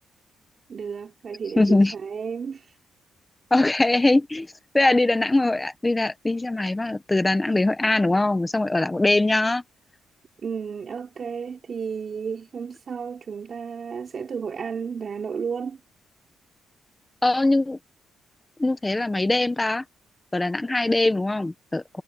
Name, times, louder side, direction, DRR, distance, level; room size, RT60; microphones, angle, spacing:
voice 1, 0.7-2.8 10.4-15.8, right 6 dB, 40° right, 3.8 m, -32 dB
voice 2, 1.6-1.9 3.5-4.5 4.7-9.6 17.2-17.8 18.6-19.8 20.3-22.0, left 2 dB, 10° left, 1.1 m, -21 dB
cardioid pair, 155°, 0 cm